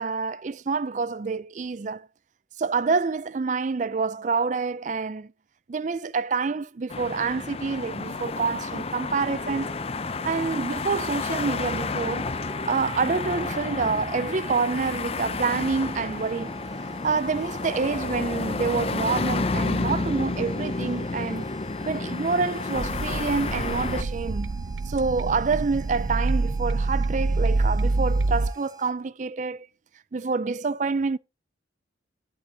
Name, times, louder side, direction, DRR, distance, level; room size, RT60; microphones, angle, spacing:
voice 1, 0.0-2.1 2.6-5.3 5.7-9.7 10.2-12.3 12.6-16.5 17.0-21.5 21.8-29.7 30.1-31.2, right 4 dB, 40° right, 0.4 m, -27 dB
sound 1, 6.9-24.0, left 3 dB, 30° left, 0.5 m, -31 dB
sound 2, 9.4-28.9, right 5 dB, 20° right, 1.0 m, -47 dB
sound 3, 22.7-28.5, right 3 dB, 70° right, 0.7 m, -26 dB
11.5 x 8.0 x 2.8 m
head